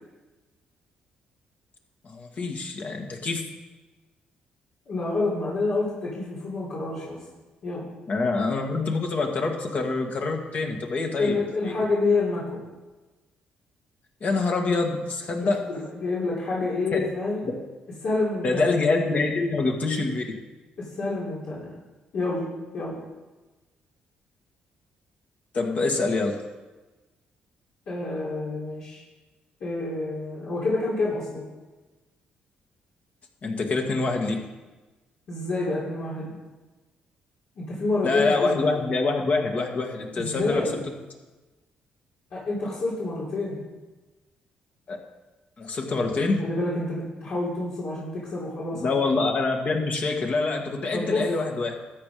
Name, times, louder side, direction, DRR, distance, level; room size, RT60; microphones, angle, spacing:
voice 1, 2.0-3.4 8.1-11.4 14.2-15.7 16.9-17.0 18.4-20.4 25.5-26.4 33.4-34.3 38.0-40.7 44.9-45.0 45.6-46.4 48.8-51.7, left 3 dB, 50° left, 2 dB, 2.1 m, -25 dB
voice 2, 4.9-7.2 7.6-7.9 11.2-12.6 15.4-17.5 18.0-18.6 20.8-21.8 22.1-23.0 27.9-29.0 29.6-31.5 35.3-36.3 37.6-38.5 40.2-40.8 42.3-43.7 46.4-49.1 50.9-51.3, left 3 dB, 70° left, -8 dB, 3.5 m, -28 dB
13.0 x 7.8 x 5.1 m, 1.2 s
supercardioid pair, 70°, 3 cm